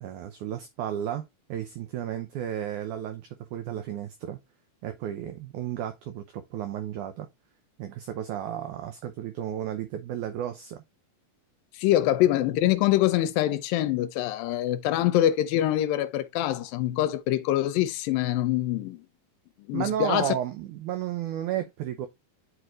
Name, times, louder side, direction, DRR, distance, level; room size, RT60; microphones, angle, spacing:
voice 1, 0.0-4.4 4.8-7.3 7.8-10.8 19.7-22.1, right 10 dB, 80° right, 1.8 m, -33 dB
voice 2, 11.7-19.1 19.7-20.3, left 13 dB, 80° left, 2.2 m, -24 dB
11.0 x 4.6 x 2.4 m
omnidirectional pair, 4.2 m